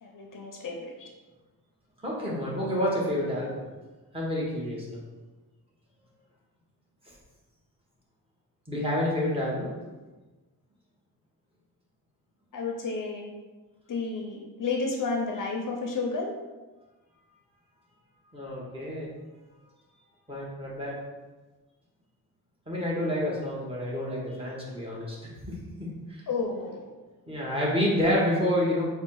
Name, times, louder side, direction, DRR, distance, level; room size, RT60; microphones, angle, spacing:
voice 1, 0.0-1.1 12.5-13.3 13.9-16.3 26.3-26.9, left 4 dB, 60° left, 1 dB, 0.6 m, -31 dB
voice 2, 2.0-3.6 4.1-5.0 8.7-9.7 18.3-19.1 20.3-21.0 22.7-25.6 26.1-26.2 27.3-28.8, left 1 dB, 15° right, -5 dB, 1.3 m, -28 dB
4.4 x 2.3 x 4.7 m, 1.2 s
wide cardioid pair, 120°, 37 cm